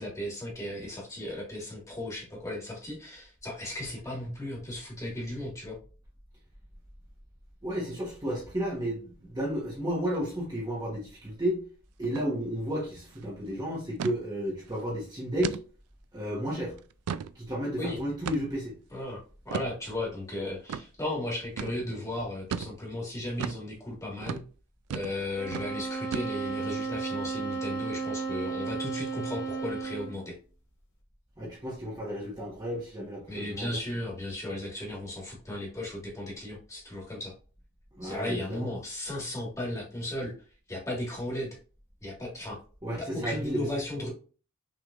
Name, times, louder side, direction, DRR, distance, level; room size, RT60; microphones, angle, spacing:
voice 1, 0.0-5.8 17.8-18.0 18.9-24.4 24.9-30.4 33.3-37.3 38.0-40.3 40.7-41.6 42.0-42.6 43.0-44.1, left 1 dB, 15° left, -2 dB, 1.7 m, -35 dB
voice 2, 7.6-11.6 12.0-15.6 16.1-16.7 17.3-18.7 31.4-33.8 38.0-38.7 42.8-43.7, equal, 15° right, -4 dB, 1.1 m, -32 dB
sound 1, 12.0-12.3 12.6-12.7 13.0-13.3 14.0-14.2 14.7-14.8 15.4-15.6 16.1-16.2 16.8-17.3 18.3-18.6 19.5-19.7 20.7-20.9 21.6-21.8 22.5-22.7 23.4-23.6 24.2-24.5 24.9-25.2 25.5-25.7 26.1-26.6, right 7 dB, 85° right, 0.3 m, -35 dB
sound 2, 25.4-30.2, right 4 dB, 55° left, 1.8 m, -34 dB
6.1 x 3.5 x 2.4 m, 0.38 s
head